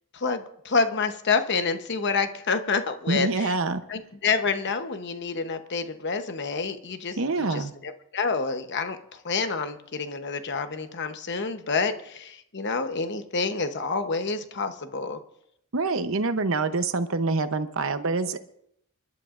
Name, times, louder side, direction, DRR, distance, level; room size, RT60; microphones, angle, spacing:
voice 1, 0.1-3.6 3.9-15.2, left 4 dB, 55° left, 8 dB, 1.0 m, -28 dB
voice 2, 3.1-3.8 7.2-7.7 15.7-18.4, right 3 dB, 70° right, 10 dB, 0.9 m, -26 dB
27.5 x 11.5 x 2.6 m, 0.74 s
head